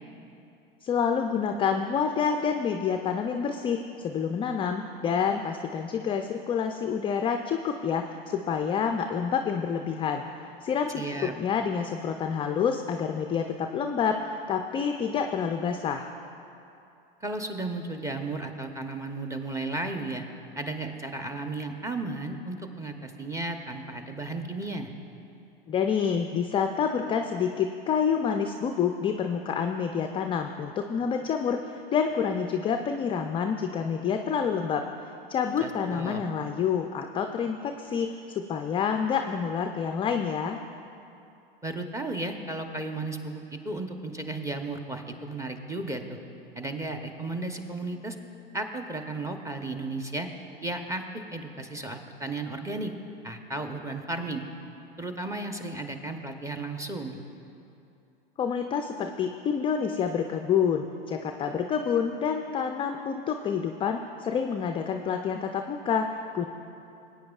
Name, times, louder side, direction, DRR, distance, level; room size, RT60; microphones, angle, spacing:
voice 1, 0.8-10.2 10.6-16.1 25.7-34.9 35.3-40.6 58.4-66.5, left 7 dB, 20° left, 5 dB, 0.3 m, -28 dB
voice 2, 10.9-11.3 17.2-20.2 20.5-24.9 35.6-36.2 41.6-46.2 46.5-48.2 48.5-50.3 50.6-51.0 51.3-52.9 53.2-54.4 55.0-57.2, right 2 dB, 10° right, 6 dB, 0.8 m, -34 dB
19.5 x 9.0 x 2.4 m, 2.7 s
hypercardioid pair, 95°, 29 cm